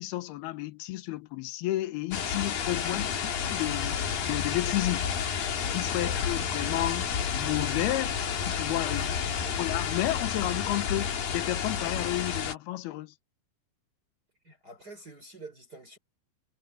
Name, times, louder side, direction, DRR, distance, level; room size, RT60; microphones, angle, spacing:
voice 1, 0.0-4.0 4.3-5.1 5.7-9.0 9.5-13.1, left 16 dB, 90° left, 2.9 m, -32 dB
sound 1, 2.1-12.6, left 7 dB, 65° left, 4.1 m, -30 dB
voice 2, 2.7-3.2 5.8-6.2 8.8-9.6 14.4-16.0, right 2 dB, 25° right, 5.5 m, -49 dB
omnidirectional pair, 4.4 m